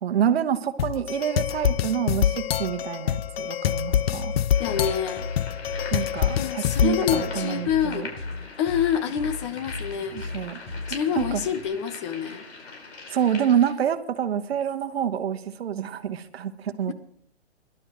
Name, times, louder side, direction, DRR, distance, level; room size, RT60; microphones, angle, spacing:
voice 1, 0.0-4.3 5.9-8.1 10.3-10.6 11.2-11.4 13.1-16.9, right 9 dB, 65° right, 10 dB, 1.2 m, -27 dB
sound 1, 0.8-7.6, left 10 dB, 65° left, 0.5 m, -26 dB
sound 2, 3.7-11.7, left 3 dB, 45° left, 6.5 m, -37 dB
sound 3, 4.5-13.7, left 3 dB, 80° left, 4.9 m, -42 dB
voice 2, 4.6-5.3 6.3-8.1 8.6-10.2 10.9-12.4 16.9-17.0, left 8 dB, 25° left, 11 dB, 0.7 m, -27 dB
21.0 x 11.5 x 3.1 m, 0.64 s
hypercardioid pair, 150°, 33 cm